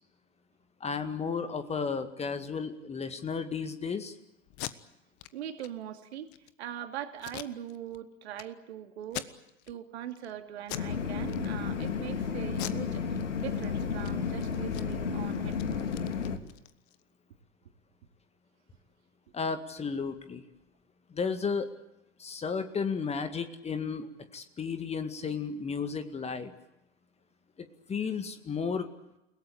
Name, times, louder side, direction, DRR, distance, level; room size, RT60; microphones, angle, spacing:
voice 1, 0.8-4.1 19.3-20.4 21.1-21.7 22.2-24.1 24.3-26.5 27.6-28.9, left 5 dB, 15° left, 9 dB, 2.0 m, -33 dB
Packing tape duct tape, 4.5-4.7 5.2-5.3 5.6-5.7 6.1-6.5 7.2-8.0 8.4-8.5 9.0-9.7 10.1-10.3 10.6-10.9 11.3-11.9 12.5-13.7 13.9-14.1 14.4-17.0, left 16 dB, 40° left, 1.4 m, -42 dB
voice 2, 5.3-6.3 6.6-9.3 9.7-15.9, right 10 dB, 60° right, 6 dB, 2.6 m, -41 dB
sound 1, 10.7-16.4, left 6 dB, 70° left, 2.6 m, -32 dB
29.5 x 18.0 x 8.6 m, 0.90 s
figure-of-eight pair, 90°, 37 cm